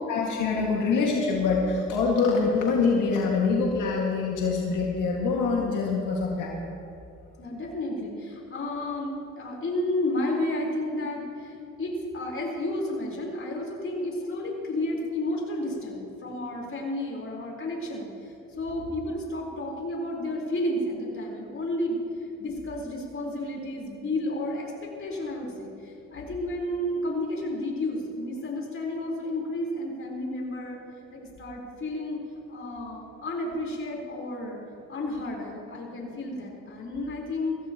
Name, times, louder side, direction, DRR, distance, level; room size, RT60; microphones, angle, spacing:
voice 1, 0.1-6.6, left 4 dB, 90° left, -2 dB, 2.1 m, -25 dB
voice 2, 7.4-22.0 22.4-30.8 31.1-32.2 32.5-34.6 34.9-37.6, left 1 dB, 45° left, -2 dB, 4.4 m, -32 dB
22.5 x 16.0 x 3.0 m, 2.6 s
cardioid pair, 90°, 30 cm